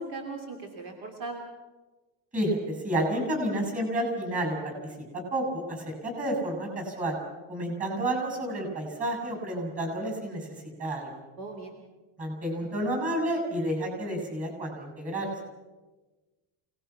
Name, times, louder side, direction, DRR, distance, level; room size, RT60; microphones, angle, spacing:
voice 1, 0.0-1.4 11.4-11.8, right 2 dB, 50° right, 3 dB, 2.9 m, -38 dB
voice 2, 2.3-4.7 5.3-7.2 7.5-10.5 10.8-11.1 12.2-15.3, right 1 dB, 20° right, 3 dB, 7.0 m, -30 dB
28.5 x 19.0 x 5.9 m, 1.2 s
cardioid pair, 155°, 42 cm